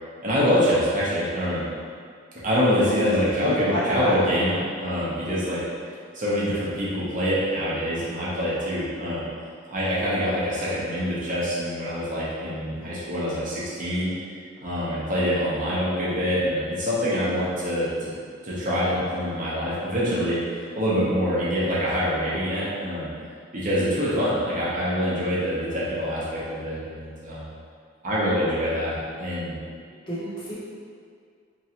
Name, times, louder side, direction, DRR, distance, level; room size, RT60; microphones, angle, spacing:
voice 1, 0.2-1.6 2.4-5.6 6.1-9.2 9.7-14.1 14.6-18.1 18.4-23.1 23.5-27.4 28.0-29.6, equal, 40° right, -9 dB, 0.7 m, -25 dB
voice 2, 3.4-4.6 30.1-30.5, equal, 25° left, -10 dB, 0.8 m, -30 dB
3.0 x 2.5 x 2.8 m, 2.2 s
head